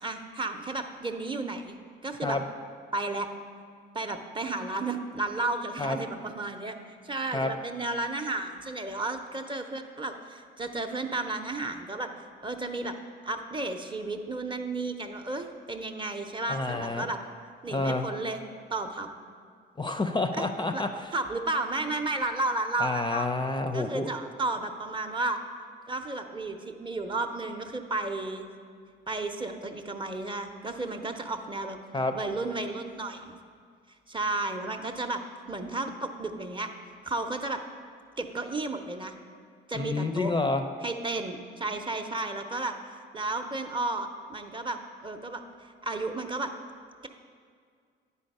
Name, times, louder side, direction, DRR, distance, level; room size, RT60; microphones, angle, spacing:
voice 1, 0.0-1.7 2.0-2.4 2.9-3.3 3.9-12.9 13.2-17.2 17.6-18.4 18.7-19.1 20.3-20.9 21.1-23.3 23.7-25.4 25.9-28.5 29.1-31.8 32.1-33.4 34.1-35.2 35.5-36.7 37.0-37.6 38.2-39.1 39.7-40.3 40.8-46.5, right 2 dB, 25° right, 6 dB, 0.6 m, -33 dB
voice 2, 16.5-17.1 17.7-18.1 19.8-20.9 22.8-24.1 31.9-32.1 39.7-40.6, left 2 dB, 20° left, 6 dB, 0.4 m, -28 dB
9.7 x 4.2 x 5.3 m, 2.1 s
cardioid pair, 80°, 20 cm